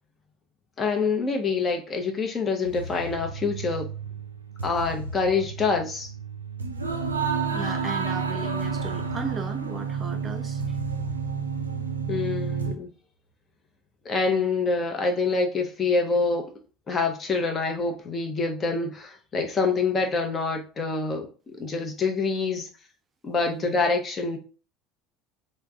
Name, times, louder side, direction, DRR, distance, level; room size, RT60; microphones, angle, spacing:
voice 1, 0.8-3.9 4.6-6.1 12.1-12.9 14.0-16.5 16.9-21.3 21.6-22.7 23.2-24.4, left 4 dB, 30° left, 0.8 m, -26 dB
sound 1, 2.6-12.7, right 5 dB, 85° right, 0.4 m, -31 dB
voice 2, 7.5-10.8 23.5-23.7, right 4 dB, 30° right, 0.5 m, -36 dB
3.5 x 2.2 x 3.4 m
figure-of-eight pair, 65°, 0 cm